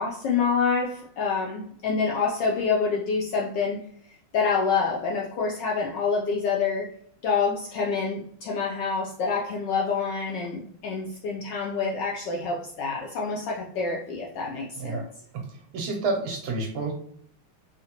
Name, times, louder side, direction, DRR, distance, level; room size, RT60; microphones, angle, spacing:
voice 1, 0.0-3.8 4.3-6.9 7.2-15.0, left 5 dB, 75° left, -3 dB, 1.0 m, -27 dB
voice 2, 15.7-16.9, right 3 dB, 75° right, 3 dB, 1.4 m, -29 dB
3.8 x 2.1 x 2.8 m, 0.64 s
omnidirectional pair, 2.3 m